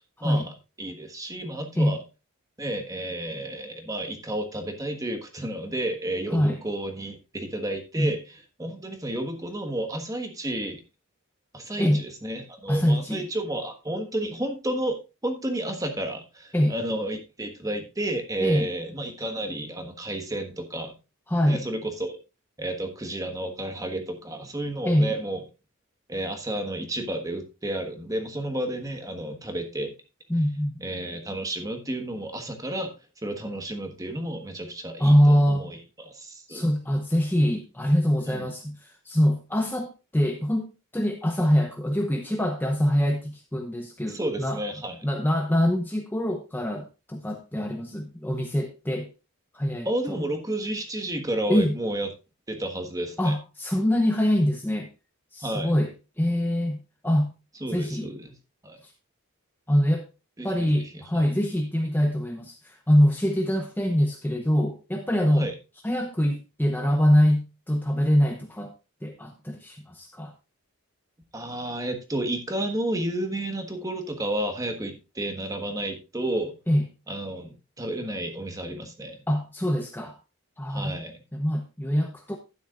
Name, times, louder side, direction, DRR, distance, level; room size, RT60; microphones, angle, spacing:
voice 1, 0.2-0.5 0.8-2.0 2.6-8.2 8.6-10.8 11.5-20.9 21.5-22.2 22.6-25.4 26.1-29.9 30.8-32.9 33.2-36.7 38.3-38.5 44.0-45.1 49.8-52.1 52.5-53.4 55.4-55.7 57.6-58.3 58.6-58.8 60.4-61.3 65.4-65.5 71.3-76.6 77.1-79.2 80.7-81.2, right 1 dB, 15° right, 6 dB, 1.3 m, -31 dB
voice 2, 12.7-13.3 16.5-16.7 18.4-18.7 21.3-21.6 24.8-25.2 30.3-30.7 35.0-35.7 36.5-44.6 45.0-49.1 49.5-50.2 51.5-51.7 53.2-54.9 55.3-56.8 57.0-57.3 57.7-58.1 58.8-58.9 59.7-60.0 60.4-65.5 65.8-68.7 69.0-70.3 76.7-76.8 79.3-80.2 80.6-81.0 81.3-82.4, equal, 10° left, 3 dB, 0.8 m, -24 dB
11.5 x 9.7 x 2.4 m, 0.28 s
head